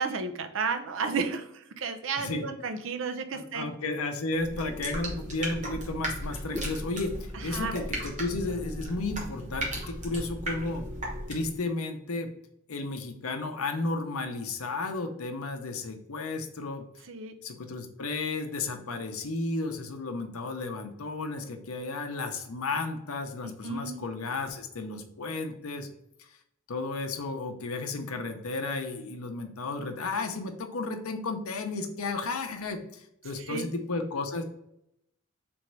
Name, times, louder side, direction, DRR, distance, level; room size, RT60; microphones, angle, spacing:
voice 1, 0.0-3.7 7.3-7.8 17.0-17.3 23.4-24.0 33.4-33.7, right 5 dB, 65° right, 7 dB, 0.5 m, -33 dB
voice 2, 3.3-10.9 11.3-12.3 12.7-16.8 17.4-25.9 26.7-34.4, left 3 dB, 85° left, 6 dB, 0.7 m, -33 dB
sound 1, 4.3-11.6, right 1 dB, 35° right, 1.1 m, -36 dB
3.5 x 3.1 x 4.6 m, 0.79 s
head